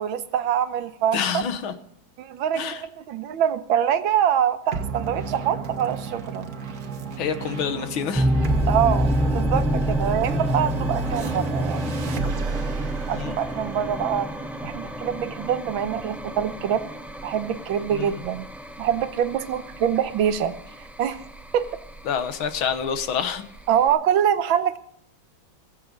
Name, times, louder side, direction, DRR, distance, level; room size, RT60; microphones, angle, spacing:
voice 1, 0.0-1.4 2.2-6.5 8.7-11.9 13.1-14.3 14.6-16.8 17.2-18.5 18.8-20.5 21.0-21.2 21.5-21.7 23.7-24.8, right 9 dB, 85° right, 11 dB, 1.7 m, -24 dB
voice 2, 1.1-1.7 2.6-2.8 7.2-8.3 13.1-13.4 17.9-18.1 22.1-23.4, left 7 dB, 85° left, 10 dB, 2.0 m, -27 dB
sound 1, 4.7-15.5, right 4 dB, 50° right, 1.6 m, -32 dB
sound 2, 8.1-23.9, equal, ahead, 0.4 m, -29 dB
21.0 x 7.7 x 5.2 m, 0.74 s
omnidirectional pair, 2.2 m